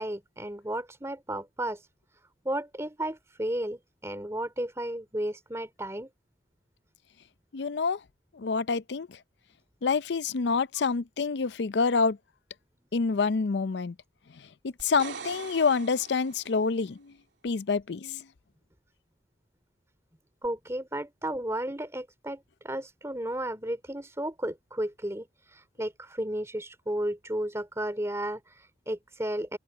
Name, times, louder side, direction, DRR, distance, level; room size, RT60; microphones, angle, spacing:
voice 1, 0.0-1.9 2.4-6.1 20.4-29.6, right 1 dB, 15° right, 3.1 m, -33 dB
voice 2, 7.5-8.0 8.3-9.2 9.8-12.2 12.9-13.9 14.6-17.1 17.4-18.2, left 4 dB, 75° left, 0.5 m, -27 dB
sound 1, 14.8-16.7 20.4-20.5, right 5 dB, 90° right, 2.9 m, -43 dB
open air
head